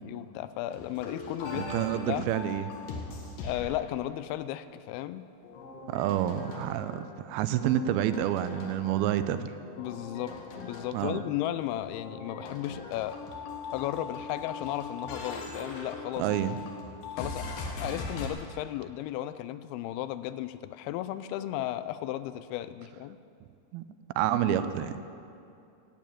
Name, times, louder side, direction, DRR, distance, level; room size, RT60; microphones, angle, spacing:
voice 1, 0.0-1.7 2.1-2.3 3.4-5.2 9.8-13.2 13.7-16.3 17.2-17.5 17.8-23.2, left 13 dB, 85° left, 13 dB, 2.4 m, -35 dB
sound 1, 0.7-3.7 5.4-7.1 7.5-9.2 9.7-11.3 11.8-18.3, left 3 dB, 65° left, 2.8 m, -40 dB
voice 2, 1.5-2.7 5.9-9.5 10.9-11.2 16.2-16.6 23.7-23.8 24.2-24.9, right 11 dB, 85° right, 11 dB, 2.4 m, -28 dB
12.0 x 8.5 x 8.7 m, 2.5 s
omnidirectional pair, 4.4 m